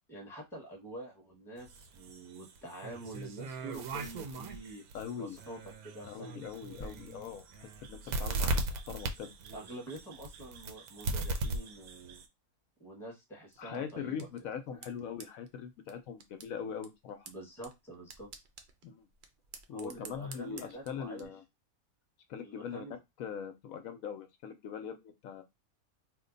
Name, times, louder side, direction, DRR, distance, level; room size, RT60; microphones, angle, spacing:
voice 1, 0.1-4.8 5.2-5.6 5.8-6.4 9.5-12.2 12.8-14.3 14.7-14.8 17.3-18.3 19.7-21.3 22.4-23.0, right 1 dB, ahead, 0 dB, 1.0 m, -46 dB
sound 1, 1.6-12.2, right 2 dB, 85° right, 1.1 m, -38 dB
voice 2, 4.9-5.4 6.0-9.3 13.6-17.3 18.8-19.1 19.7-21.4 22.3-22.9 23.2-25.4, left 7 dB, 75° left, 7 dB, 1.0 m, -41 dB
sound 2, 6.8-10.4 11.0-11.1, equal, 30° left, 0.3 m, -54 dB
sound 3, 13.5-21.2, right 5 dB, 65° right, 0.5 m, -54 dB
3.1 x 2.2 x 3.8 m, 0.20 s
omnidirectional pair, 1.5 m